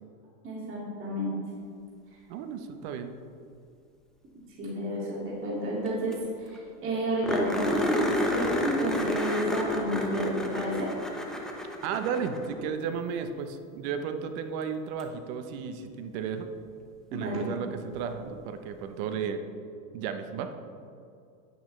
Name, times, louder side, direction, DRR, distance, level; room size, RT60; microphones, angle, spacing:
voice 1, 0.4-1.3 4.6-10.9 17.1-17.4, equal, 30° right, -6 dB, 2.4 m, -31 dB
voice 2, 2.3-3.2 11.8-16.5 17.1-19.4 19.9-20.5, right 6 dB, 50° right, 8 dB, 0.9 m, -33 dB
sound 1, 5.8-5.9 6.1-6.2 6.5-6.6 7.2-12.7 15.0-15.1 17.9-18.0, left 1 dB, ahead, 0.8 m, -30 dB
9.9 x 9.2 x 3.2 m, 2.4 s
supercardioid pair, 135°, 42 cm